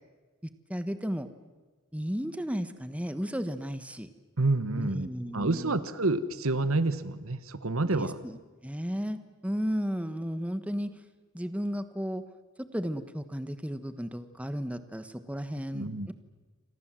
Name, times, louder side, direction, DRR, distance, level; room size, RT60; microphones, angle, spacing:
voice 1, 0.7-1.3 1.9-4.1 4.8-5.8 7.9-10.9 11.3-12.2 12.6-16.1, equal, 5° right, 10 dB, 1.2 m, -34 dB
voice 2, 4.4-5.1 5.3-8.2 15.7-16.1, right 2 dB, 70° right, 13 dB, 1.4 m, -28 dB
28.5 x 25.0 x 7.6 m, 1.3 s
head